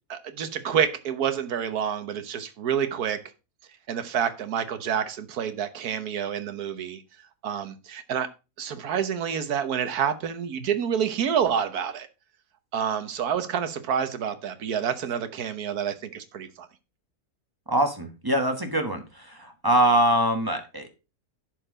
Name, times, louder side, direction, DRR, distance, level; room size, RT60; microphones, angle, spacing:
voice 1, 0.1-3.2 3.9-7.0 7.4-8.3 8.6-12.1 12.7-16.7, right 8 dB, 75° right, 1.5 m, -28 dB
voice 2, 17.7-20.9, right 1 dB, 15° right, 1.2 m, -23 dB
11.0 x 4.6 x 5.0 m
omnidirectional pair, 1.7 m